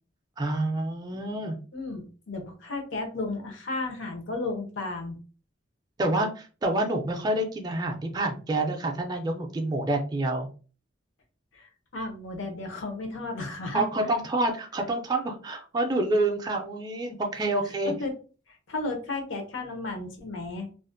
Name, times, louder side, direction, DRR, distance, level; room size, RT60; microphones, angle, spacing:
voice 1, 0.4-1.6 6.0-10.5 13.7-17.9, right 2 dB, 20° right, 2 dB, 0.3 m, -27 dB
voice 2, 1.7-5.2 11.5-13.9 17.8-18.1 18.5-20.7, left 2 dB, 75° left, 3 dB, 0.7 m, -34 dB
2.4 x 2.1 x 2.5 m, 0.37 s
head